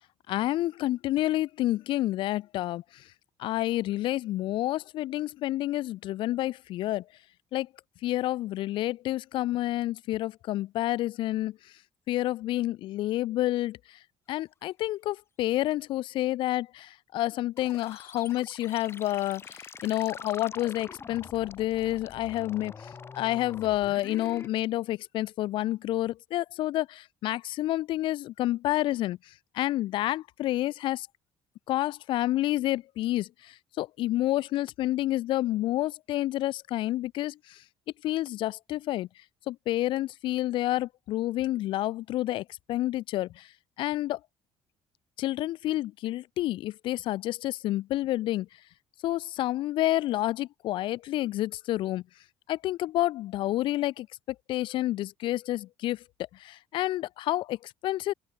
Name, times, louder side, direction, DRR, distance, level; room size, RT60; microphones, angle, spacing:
voice 1, 0.3-3.1 3.4-7.0 7.5-7.7 8.0-11.6 12.1-14.0 14.3-31.1 31.7-37.6 38.0-39.1 39.5-43.5 43.8-44.2 45.2-48.5 49.0-52.0 52.5-56.0 56.3-58.1, left 15 dB, 60° left, 0.5 m, -29 dB
sound 1, 17.6-24.5, left 5 dB, 25° left, 3.0 m, -45 dB
open air
cardioid pair, 140°, 10 cm